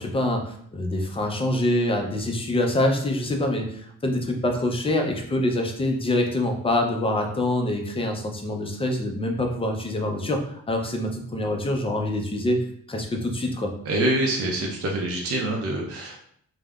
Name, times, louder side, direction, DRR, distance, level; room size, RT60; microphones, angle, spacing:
voice 1, 0.0-13.7, left 1 dB, 15° left, 2 dB, 0.4 m, -25 dB
voice 2, 13.9-16.3, right 1 dB, 45° right, -1 dB, 0.5 m, -25 dB
3.4 x 2.1 x 2.3 m, 0.65 s
wide cardioid pair, 125°, 33 cm